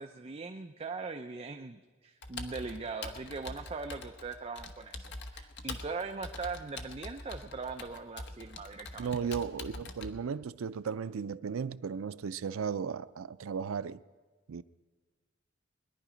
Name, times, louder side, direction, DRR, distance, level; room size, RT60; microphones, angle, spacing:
voice 1, 0.0-9.1, right 4 dB, 30° right, 0.5 m, -40 dB
Computer keyboard, 2.2-10.1, left 3 dB, 55° left, 1.0 m, -44 dB
voice 2, 9.0-14.0 14.5-14.6, right 6 dB, 85° right, 0.5 m, -35 dB
21.0 x 11.0 x 5.1 m
head